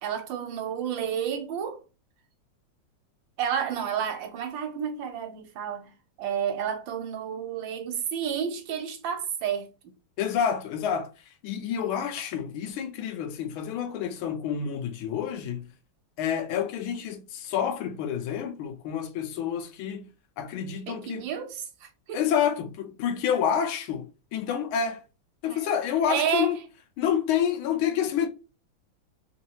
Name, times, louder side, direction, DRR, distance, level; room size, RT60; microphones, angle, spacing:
voice 1, 0.0-1.8 3.4-5.9 6.2-9.9 20.9-22.2 25.5-25.7 26.1-26.5, right 8 dB, 75° right, 1.4 m, -31 dB
voice 2, 10.2-11.1 11.4-15.7 16.2-20.1 20.4-21.3 22.1-25.0 25.4-26.6 27.0-28.3, left 8 dB, 90° left, 1.5 m, -28 dB
3.7 x 3.1 x 2.8 m
omnidirectional pair, 2.2 m